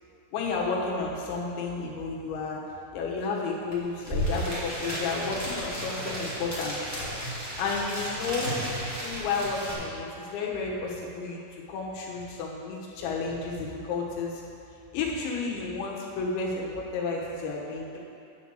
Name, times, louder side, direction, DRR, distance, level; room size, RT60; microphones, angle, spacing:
voice 1, 0.3-2.6 2.9-6.8 7.6-8.5 9.0-11.4 11.7-14.4 14.9-18.0, left 4 dB, 85° left, -2 dB, 3.6 m, -31 dB
sound 1, 3.7-3.8 4.0-9.7, equal, 10° right, 0.7 m, -33 dB
10.5 x 4.5 x 7.5 m, 2.7 s
omnidirectional pair, 5.1 m